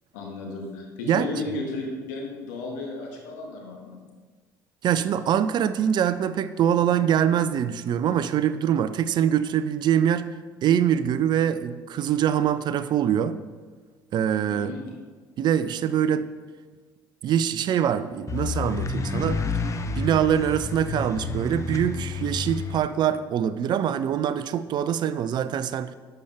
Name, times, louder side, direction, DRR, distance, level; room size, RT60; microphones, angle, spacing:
voice 1, 0.1-4.0 14.5-14.8, left 3 dB, 70° left, 0 dB, 1.7 m, -34 dB
voice 2, 4.8-10.3 10.6-13.4 14.1-14.7 15.4-16.3 17.2-19.4 20.0-25.9, right 9 dB, 45° right, 14 dB, 0.4 m, -24 dB
sound 1, 18.3-22.9, left 4 dB, 30° left, 0.7 m, -30 dB
11.5 x 6.7 x 3.5 m, 1.4 s
figure-of-eight pair, 55°, 10 cm